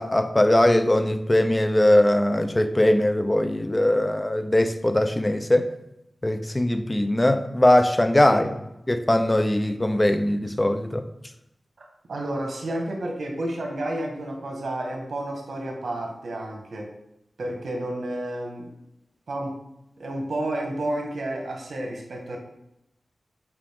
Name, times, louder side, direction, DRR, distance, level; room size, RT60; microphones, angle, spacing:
voice 1, 0.0-5.7 6.2-8.6 8.9-11.0, left 1 dB, 25° left, 9 dB, 0.7 m, -21 dB
voice 2, 11.8-16.9 17.4-18.7 19.3-19.5 20.0-22.4, right 1 dB, 80° right, 1 dB, 1.6 m, -31 dB
7.6 x 4.9 x 3.7 m, 0.85 s
cardioid pair, 60°, 0 cm